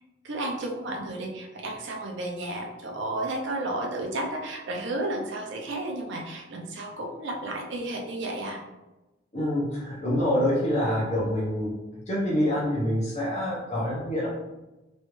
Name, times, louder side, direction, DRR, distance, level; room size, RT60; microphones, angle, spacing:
voice 1, 0.2-8.6, right 1 dB, 65° right, 1 dB, 0.6 m, -32 dB
voice 2, 9.3-11.7 12.1-14.3, left 1 dB, 35° left, -6 dB, 1.0 m, -26 dB
3.1 x 2.6 x 3.1 m, 1.0 s
head